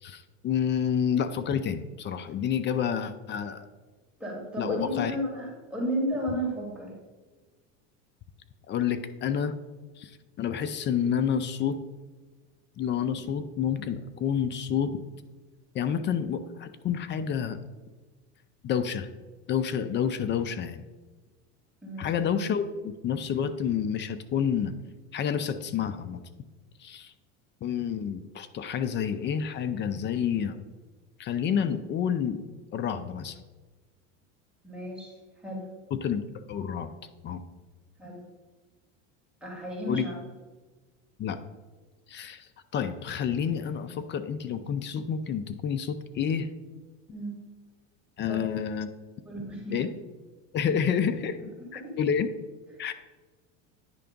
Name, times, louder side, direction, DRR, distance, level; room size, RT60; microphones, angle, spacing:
voice 1, 0.0-3.7 4.6-5.1 8.7-9.5 10.0-10.1 10.4-11.8 12.8-15.0 15.7-17.6 18.6-19.1 19.5-20.8 22.0-24.7 25.1-26.2 26.8-27.1 27.6-30.6 31.2-32.4 32.7-33.4 35.9-36.2 36.5-36.9 37.2-37.4 39.9-40.0 41.2-41.4 42.1-46.5 48.2-48.9 49.7-49.9 50.5-51.4 51.7-52.3 52.8-52.9, left 8 dB, 30° left, 11 dB, 0.4 m, -29 dB
voice 2, 4.2-6.9 21.8-22.1 34.6-35.1 35.4-35.7 38.0-38.2 39.4-40.2 47.1-47.4 48.3-48.4 49.2-49.8 51.7-51.9, equal, ahead, -4 dB, 2.5 m, -33 dB
9.8 x 3.4 x 5.2 m, 1.3 s
supercardioid pair, 110°, 37 cm